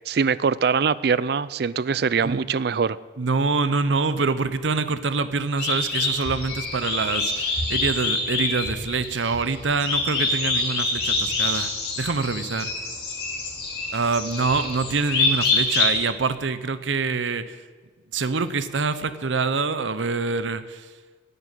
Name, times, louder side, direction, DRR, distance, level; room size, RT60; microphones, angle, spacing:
voice 1, 0.1-3.0, right 5 dB, 55° right, 19 dB, 0.4 m, -23 dB
voice 2, 3.2-11.7 12.0-12.7 13.9-17.6 18.1-20.9, right 4 dB, 80° right, 13 dB, 0.8 m, -25 dB
sound 1, 5.6-16.0, left 3 dB, 55° left, 3.3 m, -26 dB
9.6 x 9.5 x 9.8 m, 1.4 s
head